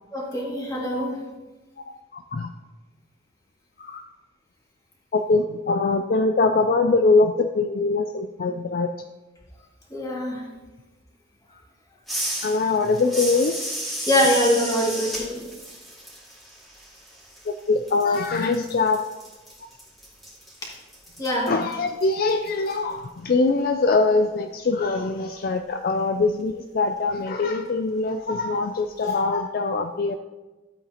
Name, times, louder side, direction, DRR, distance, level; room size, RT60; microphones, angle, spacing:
voice 1, 0.1-1.2 9.9-10.5 14.1-15.5 20.6-20.7 21.2-21.5, equal, 20° left, -4 dB, 2.2 m, -23 dB
voice 2, 2.1-2.5 3.8-4.0 5.1-8.9 12.4-13.6 17.5-19.0 21.5-30.2, left 3 dB, 55° left, 6 dB, 0.4 m, -23 dB
sound 1, 12.1-17.6 17.9-22.7, right 1 dB, ahead, 2.1 m, -34 dB
13.0 x 8.0 x 2.9 m, 1.2 s
head